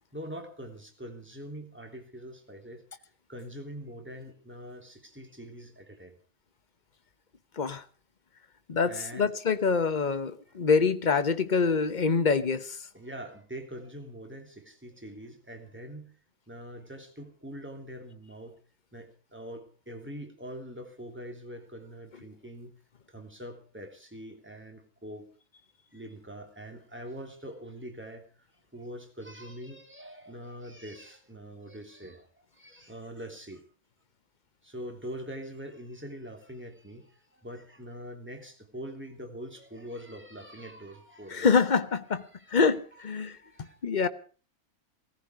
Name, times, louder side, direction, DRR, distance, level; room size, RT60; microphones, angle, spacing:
voice 1, 0.1-2.8 3.3-6.2 8.8-9.3 12.9-16.2 16.5-18.6 18.9-22.8 23.1-25.3 25.9-33.6 34.6-41.6 42.3-42.6 43.2-44.1, equal, 5° right, 3.1 m, -43 dB
voice 2, 8.7-12.8 41.3-44.1, left 5 dB, 35° left, 1.0 m, -26 dB
18.0 x 14.5 x 4.8 m
omnidirectional pair, 1.6 m